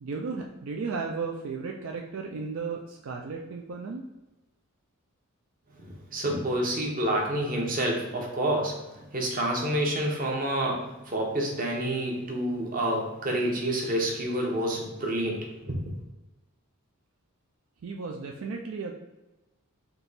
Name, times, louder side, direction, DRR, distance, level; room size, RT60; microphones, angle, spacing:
voice 1, 0.0-4.0 17.8-18.9, right 4 dB, 65° right, 1 dB, 0.4 m, -34 dB
voice 2, 5.8-15.8, right 1 dB, 40° right, 0 dB, 0.9 m, -28 dB
3.7 x 2.8 x 4.0 m, 1.0 s
head